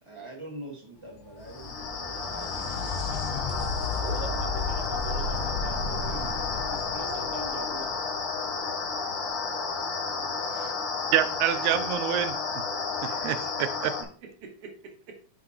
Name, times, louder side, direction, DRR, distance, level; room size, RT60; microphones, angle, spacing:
voice 1, 0.0-3.1, right 1 dB, 20° right, 0.9 m, -44 dB
sound 1, 1.1-8.7 12.1-12.2 13.2-13.3, left 3 dB, 85° left, 2.3 m, -34 dB
sound 2, 1.4-14.0, left 4 dB, 60° left, 1.4 m, -32 dB
voice 2, 4.0-7.9 10.4-10.8 14.4-14.7, right 4 dB, 60° right, 2.0 m, -43 dB
voice 3, 11.1-12.4 13.0-13.9, right 11 dB, 85° right, 1.9 m, -26 dB
8.6 x 5.8 x 2.9 m
omnidirectional pair, 3.3 m